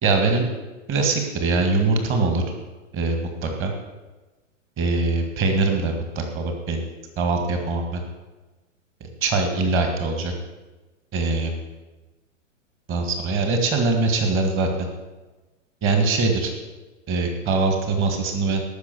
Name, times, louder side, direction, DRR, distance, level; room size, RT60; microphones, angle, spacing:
voice 1, 0.0-0.5 0.9-2.4 2.9-3.7 4.8-6.8 7.2-8.0 9.0-10.3 11.1-11.5 12.9-14.9 15.8-16.5 17.1-18.6, right 3 dB, 30° right, 4 dB, 1.9 m, -22 dB
14.0 x 6.3 x 6.9 m, 1.2 s
figure-of-eight pair, 105°, 38 cm